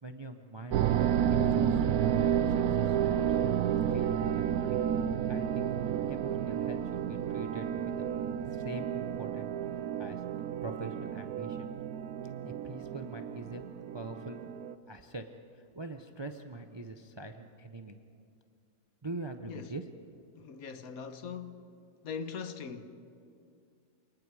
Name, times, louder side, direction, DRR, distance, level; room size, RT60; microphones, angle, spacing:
voice 1, 0.0-1.9 2.5-3.4 3.9-4.8 5.3-8.0 8.4-9.5 10.0-10.2 10.6-11.7 12.4-13.6 13.9-14.4 14.9-15.2 15.7-18.0 19.0-19.8, right 2 dB, 30° right, 0.5 m, -43 dB
sound 1, 0.7-14.7, right 9 dB, 75° right, 1.1 m, -31 dB
voice 2, 20.4-21.7 22.0-22.9, left 6 dB, 65° left, 1.4 m, -41 dB
28.0 x 20.0 x 4.8 m
omnidirectional pair, 1.6 m